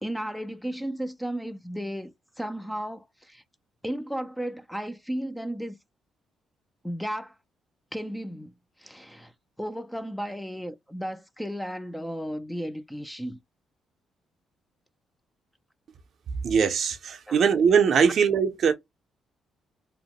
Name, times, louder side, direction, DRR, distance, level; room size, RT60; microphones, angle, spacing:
voice 1, 0.0-3.4 3.8-5.8 6.8-7.4 7.9-8.5 8.8-9.3 9.6-13.4 17.3-17.4 18.0-18.1, equal, 5° left, 0.4 m, -34 dB
voice 2, 16.4-18.7, right 6 dB, 60° right, 0.5 m, -21 dB
2.8 x 2.1 x 2.8 m
cardioid pair, 90°, 0 cm